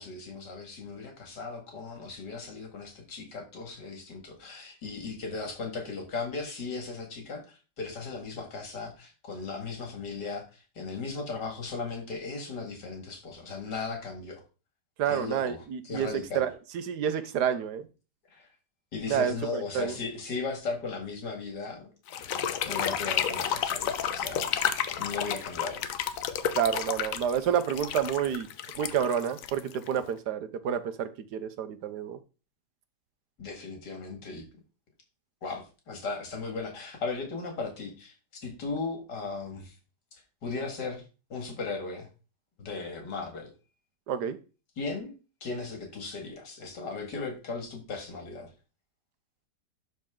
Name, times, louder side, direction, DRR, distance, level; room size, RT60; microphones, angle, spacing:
voice 1, 0.0-14.4 15.1-16.5 18.3-18.5 18.9-21.9 22.2-24.6 25.0-25.8 33.4-34.5 35.4-38.1 38.4-39.7 40.4-41.0 41.3-42.1 42.6-43.5 44.8-45.1 45.4-48.5, left 4 dB, 80° left, 3 dB, 2.7 m, -37 dB
voice 2, 15.0-16.1 16.3-17.9 19.1-19.9 26.6-28.5 28.8-32.2 44.1-44.4, right 8 dB, 75° right, 12 dB, 1.3 m, -29 dB
sound 1, 22.1-30.1, left 9 dB, 60° left, 1.0 m, -31 dB
12.0 x 4.4 x 3.7 m, 0.34 s
omnidirectional pair, 1.8 m